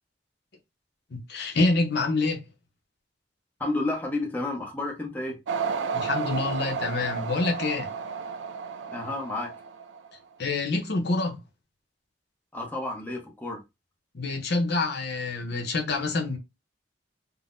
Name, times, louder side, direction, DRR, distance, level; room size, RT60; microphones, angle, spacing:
voice 1, 1.1-2.4 5.9-7.9 10.4-11.4 14.1-16.4, left 3 dB, 65° left, 0.7 m, -27 dB
voice 2, 3.6-5.4 8.9-9.5 12.5-13.6, left 2 dB, 10° left, 0.7 m, -31 dB
sound 1, 5.5-10.1, right 5 dB, 90° right, 0.4 m, -32 dB
3.7 x 2.0 x 2.5 m
head